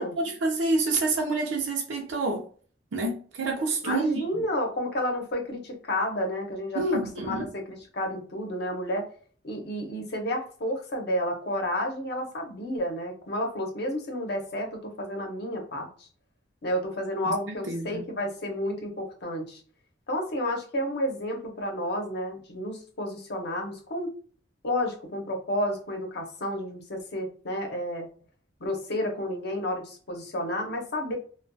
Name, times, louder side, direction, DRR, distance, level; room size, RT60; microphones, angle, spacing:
voice 1, 0.0-2.5 2.9-4.4 6.7-7.5 17.2-18.1, right 2 dB, 80° right, 0.5 m, -28 dB
voice 2, 3.8-6.8 7.2-9.0 9.4-16.1 16.6-19.6 20.1-24.1 24.6-28.1 28.6-31.2, left 1 dB, 60° left, 0.7 m, -31 dB
2.2 x 2.2 x 2.5 m
head